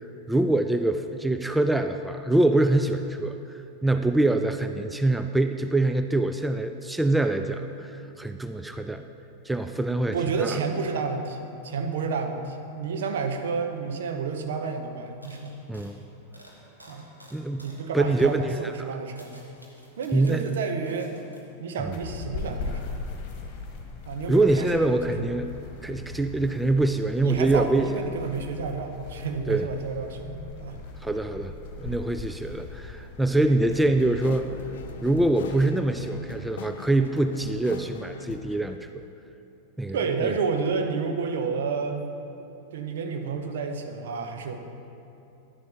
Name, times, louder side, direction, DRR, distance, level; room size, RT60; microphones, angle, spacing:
voice 1, 0.3-3.4 3.8-9.0 9.5-10.6 15.7-16.0 17.3-17.6 17.9-18.6 20.1-20.6 21.8-21.9 24.3-25.5 25.8-28.0 29.5-29.7 31.0-31.5 31.8-34.6 35.0-38.8 39.8-40.0 40.2-40.3, right 2 dB, 5° right, 7 dB, 0.3 m, -24 dB
voice 2, 10.1-15.5 16.9-17.1 17.6-19.4 20.0-21.1 21.6-23.0 24.0-25.3 27.2-30.8 39.9-42.1 42.7-44.6, right 5 dB, 60° right, 5 dB, 0.7 m, -30 dB
sound 1, 14.1-14.2 14.4-14.7 15.2-17.9 18.2-18.4 18.9-20.5 20.8-21.4, equal, 85° right, 1.4 m, -53 dB
sound 2, 21.8-35.6, left 4 dB, 45° left, 1.3 m, -40 dB
sound 3, 33.7-38.8, left 6 dB, 60° left, 0.4 m, -41 dB
10.5 x 10.5 x 2.9 m, 2.9 s
figure-of-eight pair, 90°, 0 cm